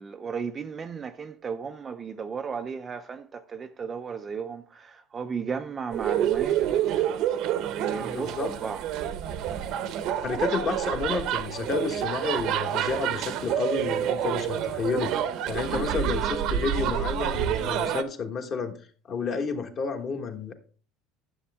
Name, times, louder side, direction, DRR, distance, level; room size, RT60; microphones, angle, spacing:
voice 1, 0.0-7.0 7.7-8.8 10.4-10.6 15.7-15.9, right 6 dB, 20° right, 0.4 m, -35 dB
sound 1, 5.9-18.0, right 10 dB, 50° right, 0.8 m, -28 dB
voice 2, 8.1-8.5 10.2-15.1 15.5-18.8 19.1-20.5, left 5 dB, 30° left, 1.3 m, -30 dB
9.9 x 7.1 x 3.5 m
cardioid pair, 155°, 0 cm